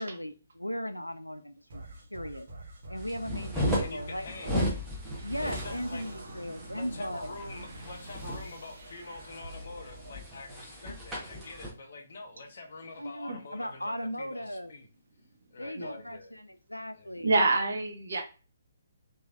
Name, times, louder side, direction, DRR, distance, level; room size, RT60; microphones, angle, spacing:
voice 1, 0.0-1.8 2.1-2.5 2.9-4.7 5.2-7.3 10.8-11.0 13.0-14.7 15.6-17.4, equal, 85° left, 0.3 m, -37 dB
sound 1, 1.7-11.0, right 2 dB, 40° right, 1.1 m, -45 dB
sound 2, 3.0-11.7, equal, 5° right, 0.9 m, -35 dB
voice 2, 3.8-4.6 5.4-6.1 6.7-14.9 15.5-16.3 17.0-17.2, left 3 dB, 50° left, 0.7 m, -45 dB
voice 3, 17.2-18.2, right 3 dB, 55° right, 0.7 m, -26 dB
3.2 x 2.6 x 2.4 m
figure-of-eight pair, 135°, 0 cm